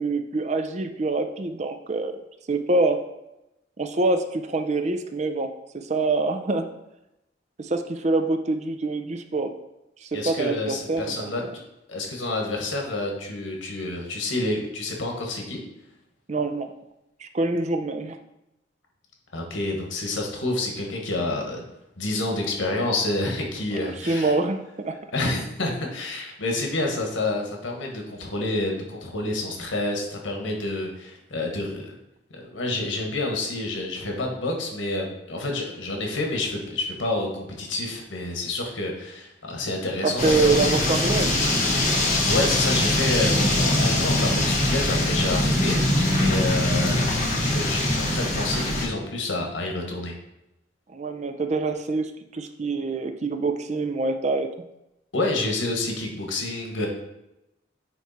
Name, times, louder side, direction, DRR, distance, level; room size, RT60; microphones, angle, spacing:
voice 1, 0.0-2.1 2.5-3.0 3.8-6.6 7.6-9.5 10.0-11.1 16.3-16.7 17.2-18.2 23.7-25.0 40.0-41.3 46.6-46.7 50.9-54.5, right 3 dB, 35° right, 7 dB, 0.5 m, -25 dB
voice 2, 10.1-11.4 11.9-15.6 19.3-21.6 22.0-24.3 25.1-32.0 32.3-40.7 42.3-45.8 46.1-47.0 47.4-50.1 55.1-56.9, left 2 dB, 85° left, 1 dB, 1.4 m, -28 dB
sound 1, 40.2-48.9, left 1 dB, 40° left, 1.4 m, -22 dB
9.1 x 3.2 x 4.2 m, 0.90 s
head